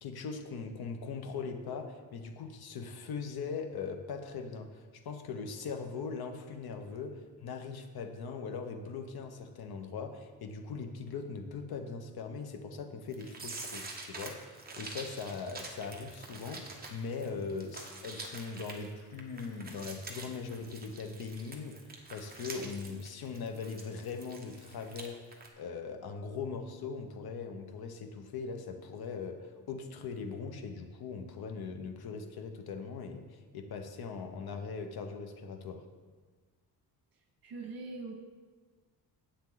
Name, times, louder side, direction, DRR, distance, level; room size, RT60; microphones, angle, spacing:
voice 1, 0.0-25.2 25.6-35.8, left 5 dB, 65° left, 6 dB, 1.2 m, -40 dB
sound 1, 13.1-25.1 25.3-25.5, right 3 dB, 25° right, 1.3 m, -46 dB
voice 2, 37.4-38.1, right 3 dB, 60° right, 2 dB, 1.9 m, -41 dB
10.5 x 8.5 x 4.0 m, 1.4 s
cardioid pair, 145°, 39 cm